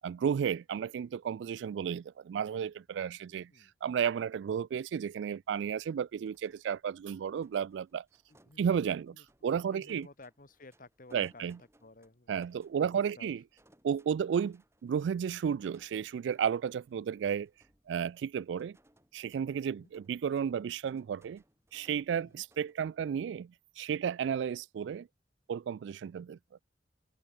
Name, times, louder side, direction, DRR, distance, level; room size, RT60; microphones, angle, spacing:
voice 1, 0.0-3.5 3.8-8.0 8.6-9.2 9.4-10.1 11.1-11.6 12.3-13.4 13.8-17.5 17.9-18.8 19.1-21.4 21.7-25.1 25.5-26.4, right 7 dB, 75° right, 0.3 m, -33 dB
voice 2, 3.3-3.7 8.3-9.2 9.7-12.3 12.8-13.3 19.7-19.9 22.2-22.4, left 2 dB, 50° left, 1.9 m, -55 dB
sound 1, 5.5-22.7, right 1 dB, 15° right, 7.8 m, -69 dB
open air
head